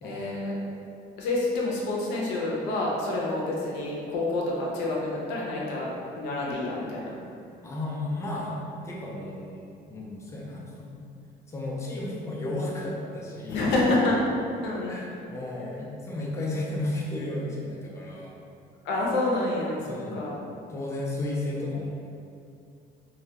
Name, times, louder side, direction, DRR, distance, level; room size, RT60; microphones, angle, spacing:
voice 1, 0.0-0.6 1.2-5.9 6.2-7.2 13.5-14.9 18.8-20.4, left 2 dB, 90° left, -4 dB, 0.5 m, -28 dB
voice 2, 7.6-10.9 11.5-13.6 14.9-18.3 19.9-20.3 20.7-21.9, left 1 dB, 15° left, -4 dB, 0.4 m, -33 dB
2.2 x 2.1 x 2.7 m, 2.5 s
cardioid pair, 110°, 17 cm